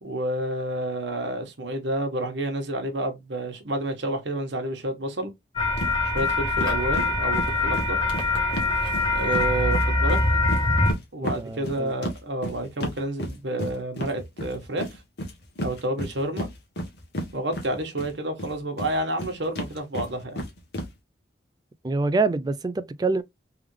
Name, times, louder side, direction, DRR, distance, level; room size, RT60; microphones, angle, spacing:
voice 1, 0.0-5.3 6.0-8.0 9.1-10.5 11.1-15.0 15.6-16.5 17.3-20.4, right 1 dB, 75° right, 1.3 m, -29 dB
sound 1, 5.6-10.9, left 2 dB, 25° left, 1.3 m, -23 dB
sound 2, 5.8-5.9 6.2-6.3 6.6-9.5 9.7-18.1 18.4-20.9, equal, 60° left, 1.2 m, -33 dB
voice 2, 11.2-11.9 21.8-23.2, right 3 dB, 20° right, 0.3 m, -26 dB
3.5 x 3.5 x 3.2 m
head